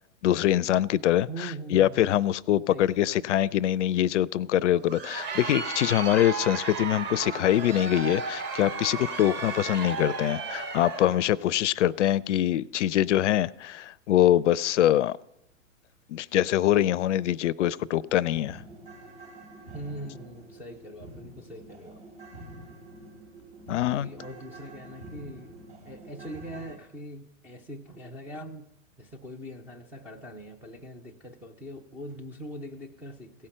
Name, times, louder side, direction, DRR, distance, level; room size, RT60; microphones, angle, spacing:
voice 1, 0.2-15.2 16.1-18.6 23.7-24.1, left 12 dB, 65° left, 0.5 m, -24 dB
voice 2, 1.3-2.1 2.7-3.2 19.7-22.0 23.8-25.5 25.9-28.7 29.0-33.5, right 1 dB, 5° right, 0.3 m, -42 dB
Crowd, 4.7-11.3, right 4 dB, 25° right, 1.5 m, -34 dB
sound 1, 17.3-17.4 17.7-26.7, right 1 dB, 60° right, 4.4 m, -47 dB
16.0 x 5.6 x 8.7 m
hypercardioid pair, 115°, 40 cm